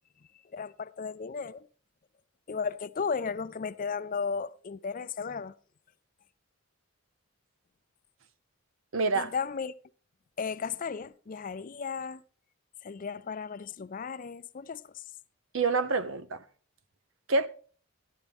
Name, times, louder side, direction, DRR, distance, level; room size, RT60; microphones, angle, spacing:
voice 1, 0.5-1.7 2.5-5.5 9.1-9.7 10.4-12.2 12.8-15.0, left 5 dB, 40° left, 0.4 m, -35 dB
voice 2, 8.9-9.3 15.5-16.4 17.3-17.5, right 3 dB, 65° right, 0.8 m, -27 dB
12.5 x 12.0 x 3.5 m
head